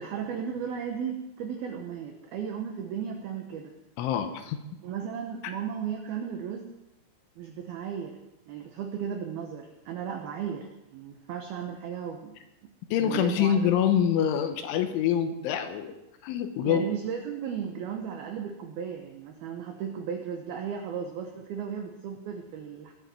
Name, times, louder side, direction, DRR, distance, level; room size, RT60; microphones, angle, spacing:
voice 1, 0.0-3.8 4.8-6.7 7.4-8.2 8.5-12.4 12.6-13.6 16.6-22.9, right 7 dB, 85° right, 3 dB, 2.2 m, -35 dB
voice 2, 4.0-4.6 12.9-16.0 16.2-16.8, left 9 dB, 80° left, 7 dB, 3.1 m, -25 dB
21.5 x 9.1 x 4.4 m, 0.92 s
omnidirectional pair, 5.9 m